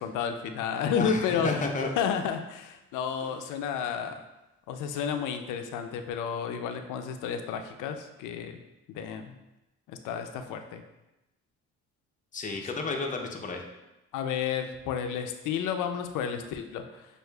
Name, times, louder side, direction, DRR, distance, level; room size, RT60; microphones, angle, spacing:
voice 1, 0.0-1.6 2.0-4.2 4.7-8.6 8.9-9.3 9.9-10.8 14.1-17.1, left 7 dB, 90° left, 6 dB, 0.5 m, -31 dB
voice 2, 0.9-1.9 12.3-13.6, left 3 dB, 25° left, 2 dB, 0.6 m, -32 dB
6.3 x 2.5 x 2.3 m, 0.97 s
cardioid pair, 90°, 30 cm